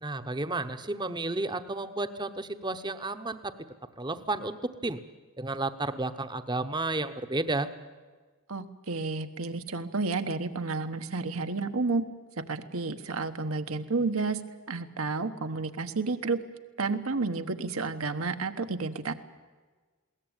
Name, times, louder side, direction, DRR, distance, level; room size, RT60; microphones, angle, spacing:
voice 1, 0.0-3.5 4.0-4.6 4.8-5.0 5.4-7.7, right 2 dB, 20° right, 10 dB, 0.9 m, -32 dB
voice 2, 8.5-12.0 12.4-14.4 14.7-16.4 16.8-19.1, right 3 dB, 75° right, 8 dB, 1.2 m, -31 dB
21.5 x 18.0 x 8.9 m, 1.4 s
head